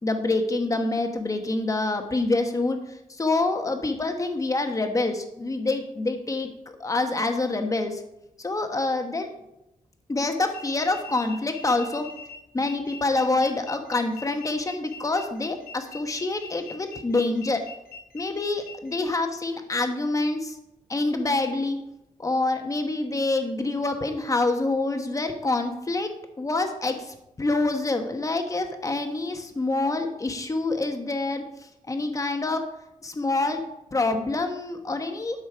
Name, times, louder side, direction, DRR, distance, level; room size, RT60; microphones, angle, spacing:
voice 1, 0.0-6.5 6.8-8.0 8.4-9.3 10.1-12.1 12.5-17.6 18.1-20.6 20.9-21.8 22.2-26.1 26.4-32.6 33.0-33.6 33.9-35.4, left 2 dB, 20° left, 5 dB, 1.2 m, -26 dB
sound 1, 10.5-19.0, left 5 dB, 90° left, 2.1 m, -43 dB
12.0 x 6.3 x 4.9 m, 0.86 s
wide cardioid pair, 135°, 15 cm